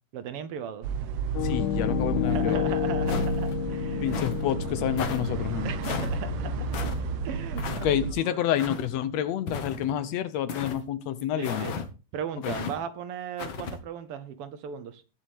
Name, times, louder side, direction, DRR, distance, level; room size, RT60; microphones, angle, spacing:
voice 1, 0.1-0.9 2.3-4.4 5.6-6.7 7.2-8.4 11.4-11.8 12.1-15.0, right 8 dB, 70° right, 1.4 m, -37 dB
sound 1, 0.8-8.1, right 4 dB, 90° right, 2.5 m, -32 dB
Piano, 1.3-9.2, left 11 dB, 90° left, 2.3 m, -32 dB
voice 2, 1.4-2.7 4.0-5.7 7.8-11.7 12.4-12.5, left 11 dB, 70° left, 1.7 m, -28 dB
sound 2, 3.1-3.6 4.1-4.4 5.0-5.2 5.8-6.1 6.7-7.0 7.6-7.9 8.6-8.9 9.5-10.0 10.5-10.8 11.4-11.9 12.4-12.7 13.4-13.8, left 6 dB, 50° left, 1.6 m, -34 dB
19.5 x 7.2 x 3.5 m
omnidirectional pair, 3.4 m